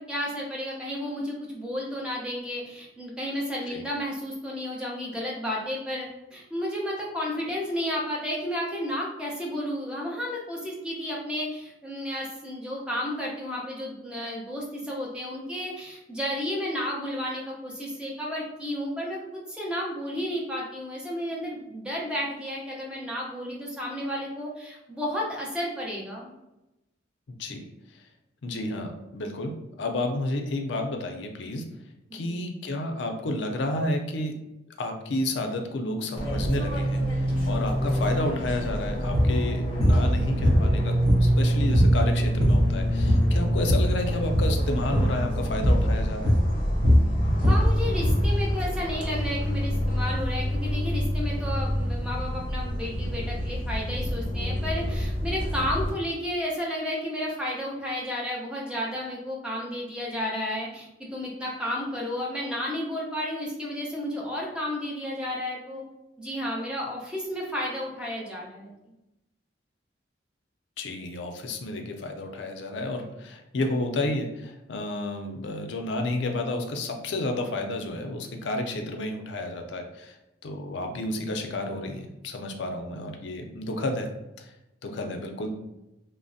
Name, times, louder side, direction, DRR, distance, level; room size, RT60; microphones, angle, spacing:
voice 1, 0.0-26.3 32.1-32.4 47.4-65.8 66.2-68.7, left 1 dB, 5° right, -4 dB, 0.5 m, -32 dB
voice 2, 27.3-27.6 27.9-28.0 28.4-31.7 32.1-34.3 34.8-40.9 41.2-46.4 70.8-80.2 80.4-84.1 84.4-84.5 84.8-85.5, left 2 dB, 70° left, 4 dB, 0.4 m, -31 dB
Fixed-wing aircraft airplane, 36.2-55.9, equal, 25° left, 0.7 m, -27 dB
sound 1, 39.1-39.3 39.8-40.0 40.4-41.4 41.7-42.0 42.3-42.7 43.0-43.9 44.2-44.5 44.9-45.1 45.6-45.9 46.2-48.3, equal, 60° right, 0.6 m, -21 dB
3.2 x 2.0 x 2.5 m, 0.95 s
head